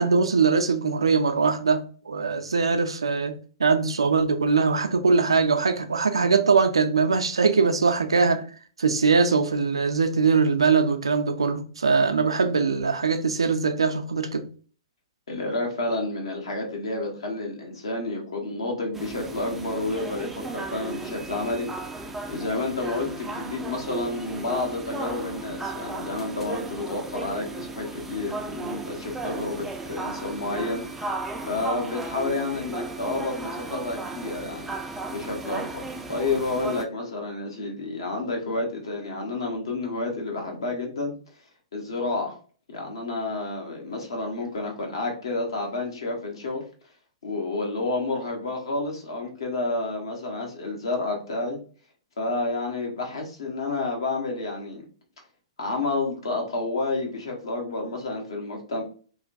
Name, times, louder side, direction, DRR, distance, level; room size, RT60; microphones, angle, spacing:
voice 1, 0.0-8.4 8.8-14.5, right 4 dB, 80° right, 0.4 m, -22 dB
voice 2, 15.3-21.7 22.3-30.8 31.5-34.7 35.1-41.1 41.7-42.4 42.7-46.6 47.2-51.6 52.2-54.8 55.6-58.8, left 2 dB, 65° left, 1.0 m, -30 dB
sound 1, 18.9-36.8, right 3 dB, 10° right, 0.3 m, -35 dB
2.9 x 2.2 x 2.5 m
figure-of-eight pair, 115°, 3 cm